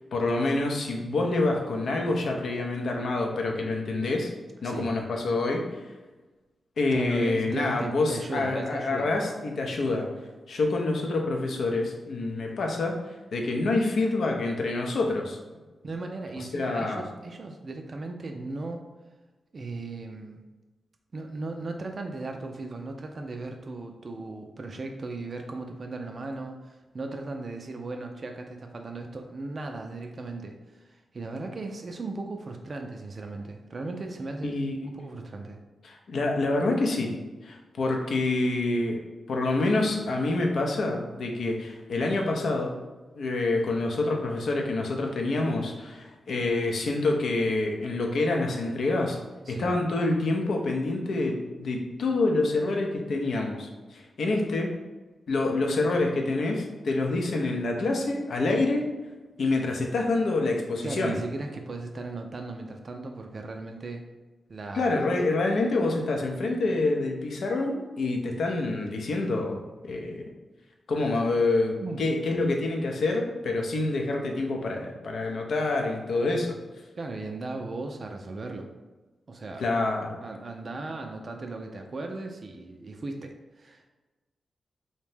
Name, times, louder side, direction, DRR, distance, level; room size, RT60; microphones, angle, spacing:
voice 1, 0.1-4.3 4.6-5.6 6.8-10.1 10.5-13.0 13.3-15.4 16.5-17.1 34.4-34.9 35.8-37.1 37.4-39.0 39.3-42.7 43.2-49.2 49.5-54.7 55.3-58.9 59.4-61.2 64.7-69.6 69.8-70.2 70.9-76.6 79.6-80.2, left 2 dB, 70° left, 1 dB, 0.5 m, -27 dB
voice 2, 6.9-9.1 15.8-18.8 19.5-20.4 21.1-34.5 34.9-35.6 49.5-49.7 60.8-64.1 64.5-65.6 71.8-72.0 77.0-78.7 79.3-79.7 80.2-83.9, right 3 dB, 50° right, 3 dB, 0.3 m, -37 dB
2.7 x 2.1 x 3.2 m, 1.2 s
supercardioid pair, 45°, 0 cm